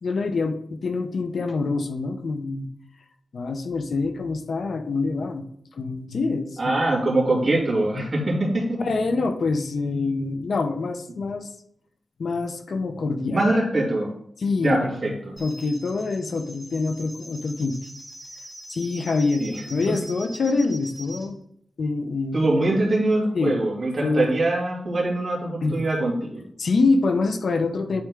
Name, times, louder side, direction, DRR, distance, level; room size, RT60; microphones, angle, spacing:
voice 1, 0.0-2.7 3.3-5.5 5.8-6.8 7.9-8.0 8.8-11.5 12.2-13.4 14.4-17.8 18.7-21.4 21.8-22.4 23.3-23.6 24.0-24.3 25.6-25.8 26.6-28.0, left 3 dB, 55° left, 7 dB, 0.8 m, -25 dB
voice 2, 6.6-8.8 13.2-14.1 14.6-15.4 19.4-19.5 19.9-20.0 22.3-26.4, right 2 dB, 35° right, -4 dB, 2.9 m, -23 dB
sound 1, 15.4-21.3, equal, 10° left, 2.7 m, -43 dB
10.5 x 4.3 x 3.7 m, 0.67 s
wide cardioid pair, 150°, 0 cm